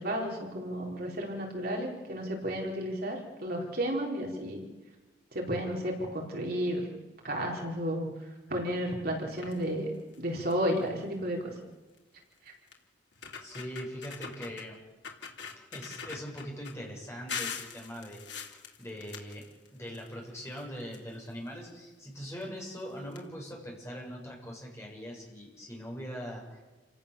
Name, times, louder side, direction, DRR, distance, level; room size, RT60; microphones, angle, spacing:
voice 1, 0.0-4.7 5.3-6.9 7.2-8.1 8.5-9.9 10.2-11.5, equal, 55° right, 0 dB, 4.4 m, -32 dB
sound 1, 9.3-9.6 10.1-10.2 10.5-10.8 12.0-12.1 12.7-12.8 13.1-14.7 15.0-16.7 17.3-20.1 20.4-21.5 22.4-22.5 22.8-22.9 23.1-23.2, left 6 dB, 70° left, 3.0 m, -42 dB
voice 2, 13.4-14.8 15.7-18.3 18.8-19.4 19.7-26.6, equal, 15° left, -2 dB, 7.4 m, -41 dB
29.0 x 17.5 x 7.1 m, 1.2 s
head